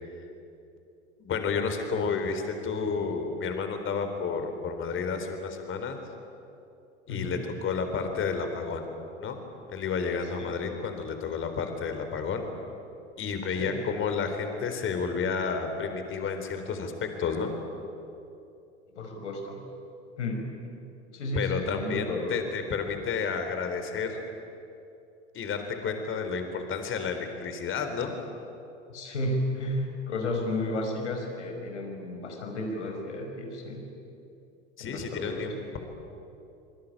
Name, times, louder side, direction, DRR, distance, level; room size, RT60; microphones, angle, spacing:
voice 1, 1.2-6.0 7.1-8.9 9.2-9.4 9.7-12.5 13.2-17.5 21.3-24.2 25.3-28.1 34.8-35.8, left 5 dB, 35° left, 6 dB, 4.1 m, -31 dB
voice 2, 7.1-7.4 10.4-10.5 13.6-13.8 18.9-19.6 20.2-20.5 21.1-22.4 28.9-33.9 34.8-35.5, left 1 dB, 75° left, 3 dB, 5.8 m, -32 dB
26.0 x 24.0 x 8.8 m, 2.8 s
figure-of-eight pair, 85°, 35 cm